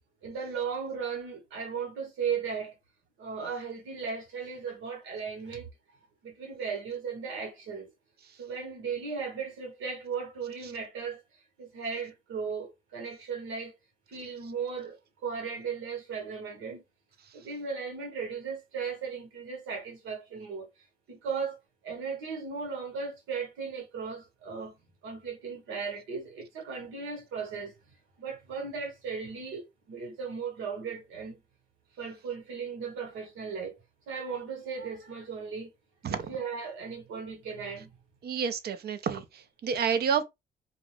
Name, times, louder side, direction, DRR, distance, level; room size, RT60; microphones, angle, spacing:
voice 1, 0.2-2.8 3.2-5.7 6.2-7.9 8.4-11.2 11.6-13.8 14.1-15.0 15.2-16.8 17.3-20.7 21.1-21.6 21.8-24.8 25.0-27.7 28.2-31.4 32.0-33.8 34.1-35.7 36.1-37.9, right 5 dB, 85° right, 1.3 m, -36 dB
voice 2, 38.2-40.2, right 7 dB, 55° right, 0.6 m, -29 dB
2.6 x 2.4 x 3.1 m
cardioid pair, 90°, 20 cm